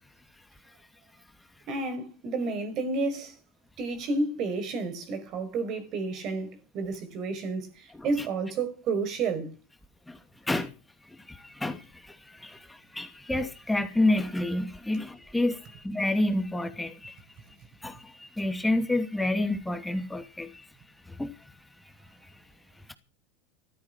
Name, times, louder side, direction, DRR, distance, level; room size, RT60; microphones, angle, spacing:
voice 1, 1.7-3.3 3.8-9.5, right 3 dB, 50° right, 5.3 m, -31 dB
voice 2, 7.9-8.3 10.1-10.7 11.0-17.2 17.8-20.7 21.0-21.9 22.2-22.3, left 1 dB, 5° left, 2.5 m, -30 dB
15.0 x 14.0 x 6.2 m
hypercardioid pair, 90°, 0 cm